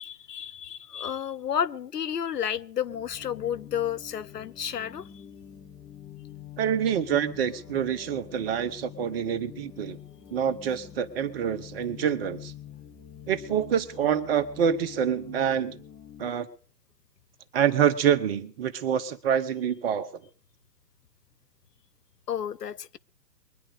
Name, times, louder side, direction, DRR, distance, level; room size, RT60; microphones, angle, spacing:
voice 1, 0.0-5.1 22.3-23.0, left 9 dB, 70° left, 1.1 m, -31 dB
sound 1, 2.9-16.3, left 10 dB, 15° left, 1.5 m, -46 dB
voice 2, 6.6-10.0 10.3-12.5 13.3-15.8 16.2-16.5 17.5-20.1, right 8 dB, 35° right, 1.4 m, -26 dB
22.5 x 10.5 x 5.0 m
hypercardioid pair, 140°, 50 cm